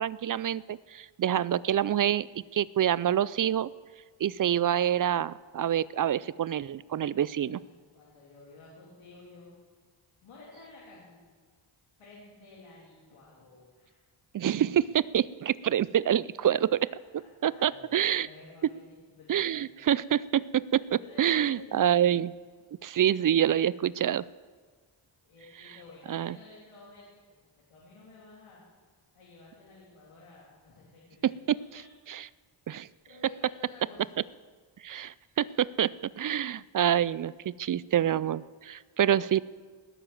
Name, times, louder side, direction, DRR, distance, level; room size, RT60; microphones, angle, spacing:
voice 1, 0.0-2.3 2.5-3.7 4.2-7.6 14.3-16.9 17.4-18.3 19.3-20.8 21.2-22.3 22.8-24.3 26.1-26.4 31.2-31.6 32.1-32.3 32.7-32.9 34.8-39.4, right 10 dB, 45° right, 20 dB, 0.4 m, -27 dB
voice 2, 7.2-9.5 10.2-11.2 12.0-14.0 14.8-14.9 16.8-19.5 21.0-22.2 25.2-27.0 27.7-28.6 29.1-31.9 33.1-34.1, left 3 dB, 85° left, -5 dB, 3.3 m, -52 dB
20.0 x 7.0 x 7.3 m, 1.5 s
cardioid pair, 50°, 50 cm